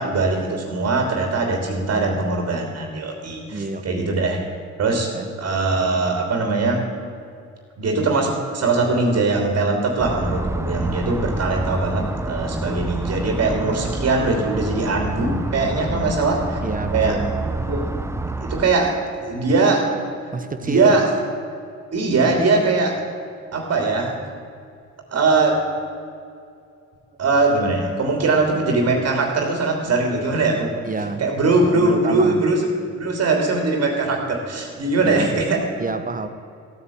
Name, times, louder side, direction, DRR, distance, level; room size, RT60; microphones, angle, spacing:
voice 1, 0.0-4.4 4.8-6.8 7.8-16.6 16.9-17.2 17.6-17.9 18.4-20.0 20.6-21.1 21.9-23.0 23.5-24.3 25.1-25.7 27.2-30.8 31.2-32.7 32.9-35.6, right 3 dB, 55° right, 2 dB, 3.2 m, -21 dB
voice 2, 3.5-4.3 5.1-5.3 15.9-16.2 16.6-17.3 20.3-21.0 30.8-31.3 31.6-32.4 35.0-35.3 35.8-36.3, right 4 dB, 25° right, 9 dB, 1.3 m, -28 dB
sound 1, 10.0-18.7, right 2 dB, 10° right, 0.9 m, -28 dB
16.0 x 9.3 x 8.8 m, 2.3 s
cardioid pair, 90°, 30 cm